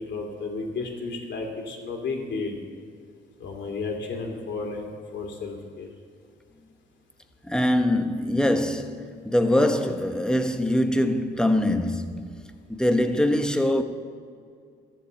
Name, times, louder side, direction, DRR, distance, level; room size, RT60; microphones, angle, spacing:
voice 1, 0.0-2.6 3.4-5.9, left 3 dB, 65° left, 2.6 m, -33 dB
voice 2, 7.4-12.3 12.7-13.8, left 1 dB, 5° left, 1.0 m, -23 dB
13.5 x 7.3 x 8.7 m
cardioid pair, 90°, 20 cm